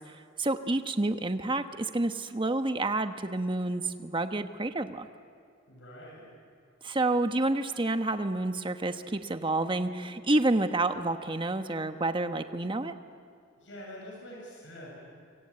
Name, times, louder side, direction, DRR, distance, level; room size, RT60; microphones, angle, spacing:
voice 1, 0.4-5.1 6.8-12.9, right 2 dB, 25° right, 8 dB, 1.1 m, -29 dB
voice 2, 5.7-6.3 13.6-14.9, equal, 75° left, -2 dB, 7.6 m, -45 dB
25.5 x 24.5 x 8.8 m, 2.2 s
head